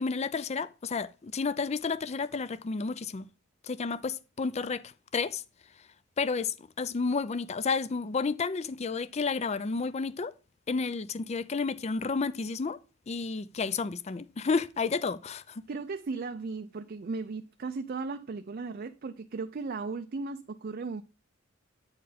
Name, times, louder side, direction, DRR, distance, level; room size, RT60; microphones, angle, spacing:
voice 1, 0.0-3.3 3.6-5.4 6.2-10.3 10.7-12.8 13.1-15.7, left 4 dB, 30° left, 0.4 m, -31 dB
voice 2, 15.7-21.0, right 4 dB, 45° right, 0.4 m, -36 dB
8.7 x 4.4 x 5.0 m
head